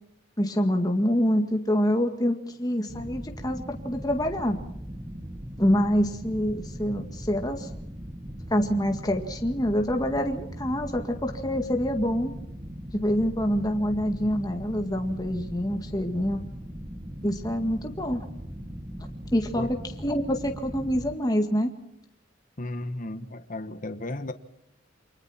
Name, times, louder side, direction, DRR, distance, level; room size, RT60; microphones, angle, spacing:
voice 1, 0.4-4.6 5.6-7.7 8.5-12.3 12.9-16.4 17.2-18.3 19.3-19.7 20.0-21.7, equal, 20° left, 1.9 m, -26 dB
sound 1, 2.9-21.2, equal, 20° right, 1.5 m, -39 dB
voice 2, 22.6-24.3, left 1 dB, 40° left, 1.3 m, -34 dB
28.5 x 25.0 x 4.4 m
head